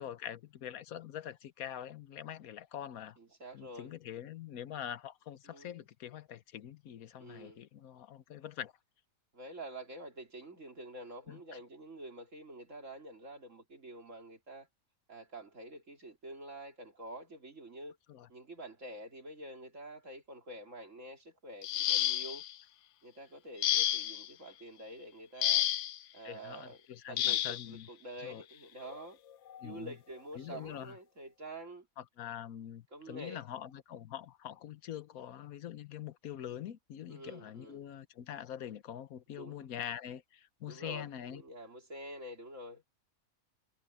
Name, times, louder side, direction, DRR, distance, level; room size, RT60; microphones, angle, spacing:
voice 1, 0.0-3.2 3.5-8.7 11.3-11.6 18.1-18.3 26.2-27.9 28.2-28.4 29.6-29.9 30.4-31.0 32.0-41.4, left 10 dB, 90° left, 1.3 m, -44 dB
voice 2, 3.2-3.9 5.4-5.9 7.2-7.6 9.3-14.7 15.1-18.0 18.3-22.4 23.0-25.7 26.1-26.8 27.1-29.2 29.6-31.9 32.9-33.4 37.1-37.8 39.3-39.6 40.7-42.8, right 1 dB, 60° right, 4.1 m, -47 dB
sound 1, 21.6-22.5 23.6-24.3 25.4-26.0 27.2-27.6 28.8-29.0 29.5-29.7, left 12 dB, 65° left, 0.9 m, -30 dB
omnidirectional pair, 1.5 m